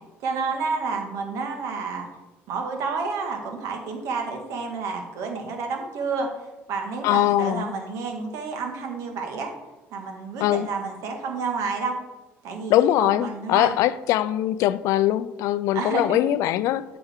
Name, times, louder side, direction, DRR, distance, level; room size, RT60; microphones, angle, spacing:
voice 1, 0.2-2.1 2.5-6.3 6.7-9.5 9.9-11.9 12.4-13.8 15.7-16.3, right 4 dB, 75° right, 1.7 m, -30 dB
voice 2, 7.0-7.7 10.4-10.7 12.7-16.8, left 13 dB, 80° left, 0.4 m, -22 dB
8.0 x 6.8 x 3.7 m
cardioid pair, 95°, 5 cm